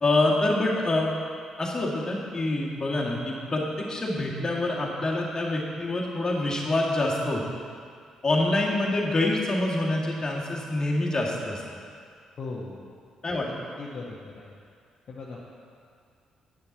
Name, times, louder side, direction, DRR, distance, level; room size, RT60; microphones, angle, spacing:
voice 1, 0.0-1.1 1.6-7.4 8.2-11.6 13.2-13.5, left 2 dB, 30° left, -3 dB, 2.0 m, -26 dB
voice 2, 12.4-12.8 13.4-14.5 15.1-15.4, left 3 dB, 45° left, -5 dB, 1.2 m, -38 dB
9.9 x 9.6 x 4.0 m, 2.2 s
figure-of-eight pair, 40°, 2 cm